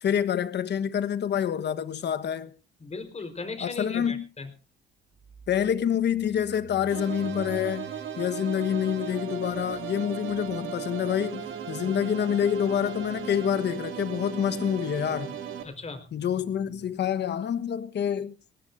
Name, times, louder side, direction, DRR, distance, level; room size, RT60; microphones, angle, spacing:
voice 1, 0.0-2.5 3.6-4.3 5.5-7.9 8.2-15.3 16.1-18.3, left 9 dB, 60° left, 1.3 m, -27 dB
voice 2, 2.8-4.5 15.6-16.0, left 4 dB, 35° left, 4.3 m, -37 dB
sound 1, 4.9-16.9, right 3 dB, 60° right, 5.5 m, -51 dB
sound 2, 6.9-15.6, right 9 dB, 80° right, 2.9 m, -36 dB
19.5 x 19.0 x 2.6 m
cardioid pair, 90°, 20 cm